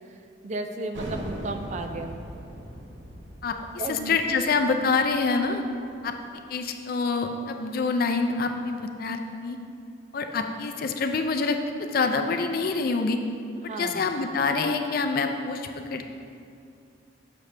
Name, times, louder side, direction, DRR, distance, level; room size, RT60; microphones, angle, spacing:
voice 1, 0.4-2.2 3.8-4.2 13.6-14.1, right 2 dB, 40° right, 6 dB, 0.4 m, -33 dB
sound 1, 0.9-6.3, equal, 75° right, 0.8 m, -40 dB
voice 2, 3.9-5.6 6.0-6.1 6.5-9.6 10.1-13.2 13.6-16.1, left 4 dB, 50° left, 5 dB, 0.4 m, -26 dB
6.8 x 6.4 x 3.3 m, 2.5 s
head